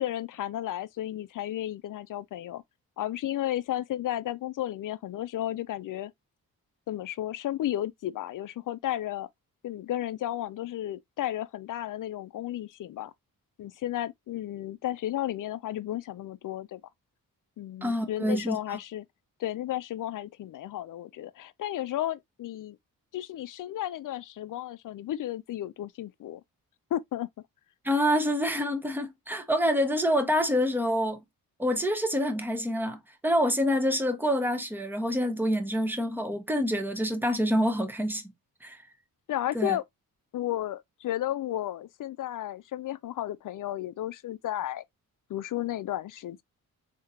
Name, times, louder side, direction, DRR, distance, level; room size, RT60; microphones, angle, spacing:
voice 1, 0.0-2.6 3.0-6.1 6.9-9.3 9.6-13.1 13.6-16.8 17.6-19.1 19.4-22.8 23.1-26.4 26.9-27.3 39.3-39.8 40.3-44.8 45.3-46.4, left 13 dB, 60° left, 0.5 m, -33 dB
voice 2, 17.8-18.8 27.8-31.2 31.6-38.2 38.6-38.8 39.5-39.8, equal, 5° right, 0.9 m, -27 dB
3.6 x 2.9 x 2.7 m
cardioid pair, 85°, 37 cm